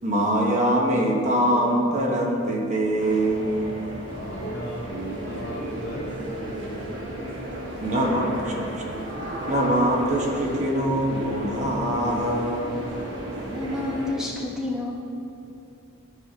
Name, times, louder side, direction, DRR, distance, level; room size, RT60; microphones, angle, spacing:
voice 1, 0.0-3.7 7.8-8.8 9.5-12.8, right 1 dB, 35° right, -1 dB, 0.9 m, -23 dB
sound 1, 3.0-14.1, right 1 dB, 55° right, 1.3 m, -34 dB
voice 2, 4.1-7.3, equal, 45° left, 0 dB, 0.9 m, -37 dB
voice 3, 13.4-14.9, left 2 dB, 5° right, -4 dB, 1.0 m, -29 dB
13.0 x 5.4 x 2.8 m, 2.6 s
head